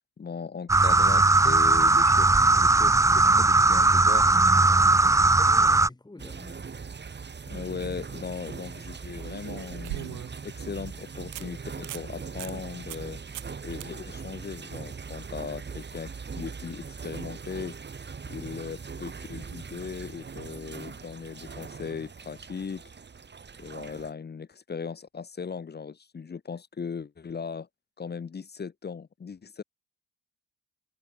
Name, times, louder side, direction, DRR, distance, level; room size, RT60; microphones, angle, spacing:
voice 1, 0.2-4.3 7.5-13.2 13.6-17.7 18.3-22.8 23.6-27.7 28.0-29.6, left 6 dB, 35° left, 1.4 m, -38 dB
sound 1, 0.7-5.9, right 3 dB, 10° right, 0.5 m, -19 dB
voice 2, 4.8-6.6 23.9-24.0, left 2 dB, 15° left, 4.1 m, -48 dB
sound 2, 6.2-24.1, right 5 dB, 35° right, 5.4 m, -40 dB
sound 3, 9.2-10.5 10.9-11.0 11.3-11.5 11.8-12.1 12.4-12.5 12.9-13.1 13.3-13.5 13.8-13.9 17.0-17.1, right 17 dB, 90° right, 1.5 m, -39 dB
cardioid pair, 90°, 30 cm